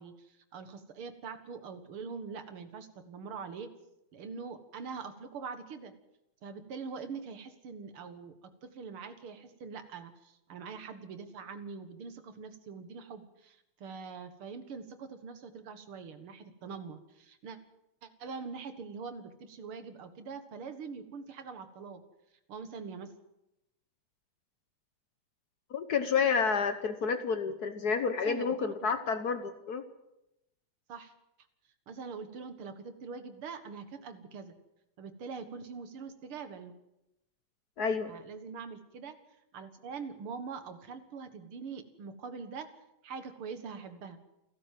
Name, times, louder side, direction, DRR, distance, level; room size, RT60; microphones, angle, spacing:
voice 1, 0.0-3.7 4.1-5.9 6.4-17.6 18.0-22.0 22.5-23.1 28.3-28.7 30.9-31.1 31.9-34.6 35.0-36.7 38.1-39.2 39.5-42.7 43.0-44.2, right 5 dB, 50° right, 9 dB, 2.2 m, -43 dB
voice 2, 25.7-29.8 37.8-38.1, left 5 dB, 80° left, 9 dB, 0.8 m, -30 dB
29.0 x 12.5 x 7.6 m, 0.88 s
omnidirectional pair, 3.4 m